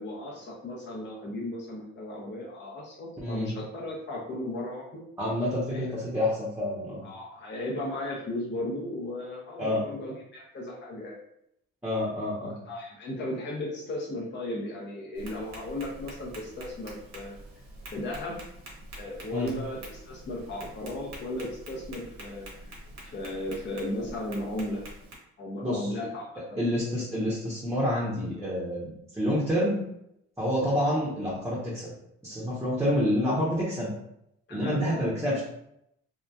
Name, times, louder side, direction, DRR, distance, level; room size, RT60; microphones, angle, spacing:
voice 1, 0.0-5.0 5.7-5.8 7.0-11.2 12.7-17.4 17.9-18.4 18.9-24.8 25.4-26.6 34.5-34.8, left 1 dB, 35° left, -3 dB, 0.6 m, -36 dB
voice 2, 5.2-7.0 9.6-9.8 11.8-12.6 19.3-19.5 25.6-25.9 26.6-29.8 30.4-31.9 32.2-33.9 34.5-35.4, left 1 dB, 10° right, -7 dB, 0.7 m, -28 dB
Tap, 15.1-25.2, right 1 dB, 60° right, 1.0 m, -46 dB
2.8 x 2.4 x 2.2 m, 0.78 s
cardioid pair, 90°, 30 cm